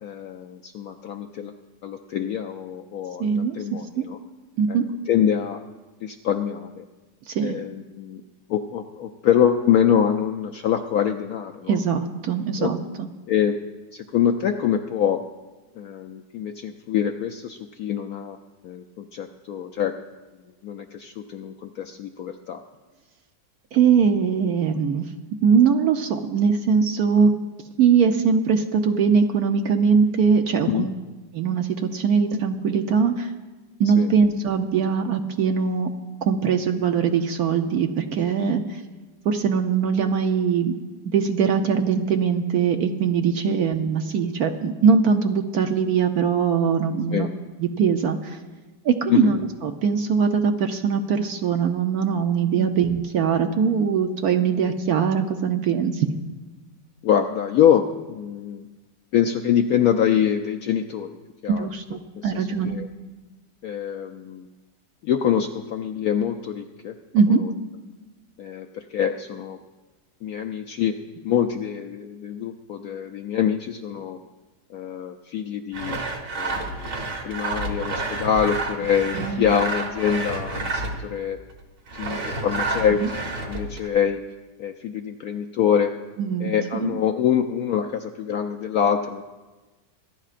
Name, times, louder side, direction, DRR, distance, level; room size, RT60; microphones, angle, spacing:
voice 1, 0.0-1.5 1.8-4.2 4.7-4.8 5.1-5.6 6.0-6.8 7.4-8.2 8.5-11.8 12.6-12.7 13.3-13.6 13.9-15.2 15.8-18.4 18.6-19.9 20.6-22.6 30.6-30.9 34.0-34.1 38.4-38.6 43.5-43.6 47.1-47.3 49.1-49.3 52.6-52.8 57.0-58.6 59.1-61.1 61.4-61.7 62.2-62.9 63.6-64.5 65.0-67.0 67.3-67.5 68.4-69.6 70.2-71.0 71.2-74.2 74.7-76.0 76.3-76.9 77.2-81.4 81.9-83.0 83.4-84.2 84.6-85.9 86.4-89.2, left 9 dB, 75° left, 5 dB, 0.8 m, -25 dB
voice 2, 3.2-3.6 4.0-4.1 4.6-4.9 7.3-7.6 11.7-13.1 23.7-25.0 25.4-27.3 27.8-30.9 31.3-33.3 33.8-35.9 36.2-38.8 39.2-40.7 41.0-48.4 48.8-56.1 61.6-62.8 67.1-67.5 79.1-79.5 83.0-83.1 86.2-87.0, right 6 dB, 65° right, 6 dB, 1.0 m, -21 dB
Sawing, 75.7-81.1 81.9-83.9, right 2 dB, 45° right, 1.7 m, -30 dB
25.5 x 11.0 x 2.5 m, 1.2 s
omnidirectional pair, 2.0 m